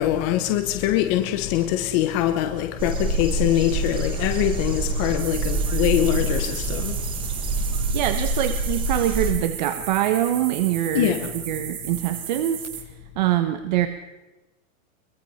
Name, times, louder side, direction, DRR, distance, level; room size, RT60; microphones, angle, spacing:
voice 1, 0.0-7.0 10.9-11.3, left 12 dB, 20° left, 1.0 m, -23 dB
sound 1, 2.8-9.3, right 2 dB, 10° right, 1.7 m, -26 dB
Brass instrument, 3.4-12.7, left 1 dB, 60° left, 6.6 m, -48 dB
sound 2, 5.2-12.8, right 9 dB, 85° right, 3.5 m, -36 dB
voice 2, 7.9-12.8 13.2-13.9, right 12 dB, 35° right, 1.0 m, -24 dB
23.0 x 21.5 x 5.6 m
supercardioid pair, 175°, 41 cm